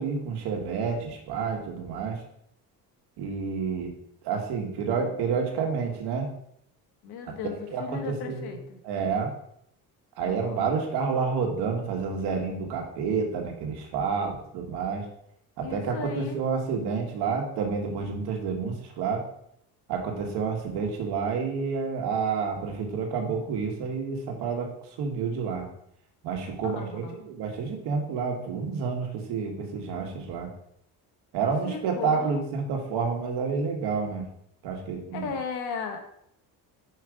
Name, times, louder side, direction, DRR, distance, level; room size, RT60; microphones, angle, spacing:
voice 1, 0.0-2.2 3.2-3.9 4.2-6.3 7.3-7.4 7.7-8.6 8.8-9.3 10.2-15.1 15.6-19.2 19.9-24.7 25.0-25.7 26.2-30.5 31.3-34.3 34.6-35.3, right 5 dB, 85° right, 2 dB, 1.7 m, -29 dB
voice 2, 7.0-8.8 10.2-10.7 15.6-16.4 26.6-27.2 31.6-32.4 35.1-36.1, left 6 dB, 80° left, 4 dB, 1.4 m, -36 dB
5.5 x 5.1 x 4.8 m, 0.72 s
cardioid pair, 155°, 39 cm